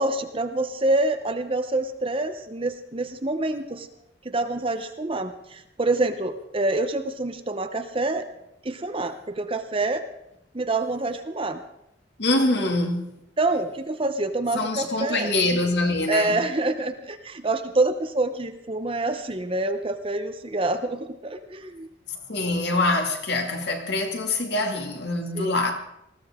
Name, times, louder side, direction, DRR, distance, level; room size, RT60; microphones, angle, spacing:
voice 1, 0.0-3.9 4.2-8.3 8.6-10.0 10.5-11.6 13.4-15.3 16.1-21.9 25.3-25.6, right 2 dB, 30° right, 0.8 m, -26 dB
voice 2, 12.2-13.1 14.5-16.4 22.3-25.7, left 2 dB, 60° left, 2.2 m, -24 dB
20.0 x 14.5 x 3.7 m
head